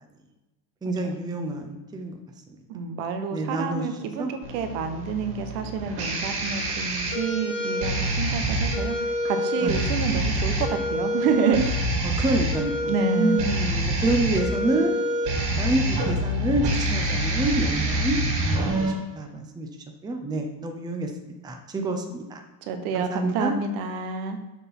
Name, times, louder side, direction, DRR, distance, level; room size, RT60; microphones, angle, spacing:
voice 1, 0.8-2.1 3.3-4.3 9.6-9.9 12.0-14.9 15.6-19.7 20.0-21.1 21.4-22.4 22.9-23.5, right 2 dB, 10° right, 4 dB, 0.7 m, -28 dB
voice 2, 2.7-11.9 12.9-13.4 22.7-24.4, right 5 dB, 75° right, 7 dB, 1.4 m, -28 dB
sound 1, 4.4-18.9, equal, 55° right, 2.6 m, -26 dB
6.9 x 6.0 x 5.5 m, 1.1 s
cardioid pair, 155°, 48 cm